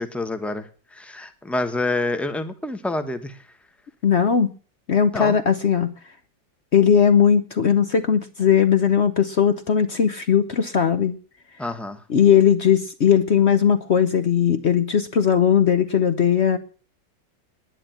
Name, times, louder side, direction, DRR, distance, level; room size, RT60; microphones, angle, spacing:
voice 1, 0.0-3.5 5.1-5.4 11.6-12.0, left 2 dB, ahead, 8 dB, 0.7 m, -28 dB
voice 2, 4.0-4.5 4.9-5.9 6.7-11.2 12.1-16.6, left 8 dB, 60° left, 11 dB, 0.7 m, -18 dB
10.0 x 10.0 x 8.9 m, 0.40 s
omnidirectional pair, 2.1 m